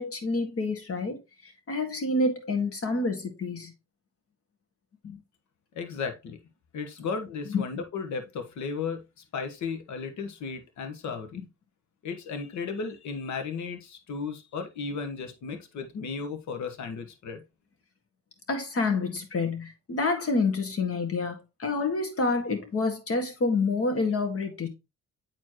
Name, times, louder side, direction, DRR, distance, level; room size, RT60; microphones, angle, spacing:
voice 1, 0.0-3.7 5.0-5.2 7.5-7.7 18.5-24.7, left 3 dB, 50° left, 1.9 m, -28 dB
voice 2, 5.7-6.4 6.7-9.0 9.3-11.4 12.0-17.4, left 5 dB, 70° left, 1.3 m, -35 dB
8.2 x 4.5 x 3.0 m
cardioid pair, 90°, 30 cm